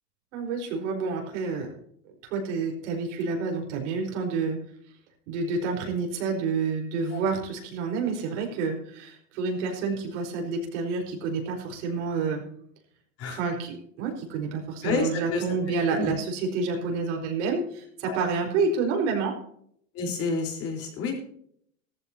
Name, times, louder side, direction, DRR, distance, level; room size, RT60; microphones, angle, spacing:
voice 1, 0.3-1.7 2.2-4.6 5.3-12.4 13.3-19.3, right 4 dB, 70° right, 1 dB, 4.7 m, -29 dB
voice 2, 14.8-16.1 18.0-18.2 19.9-21.1, left 4 dB, 35° left, 1 dB, 4.2 m, -30 dB
16.5 x 14.5 x 2.8 m, 0.67 s
supercardioid pair, 145°, 37 cm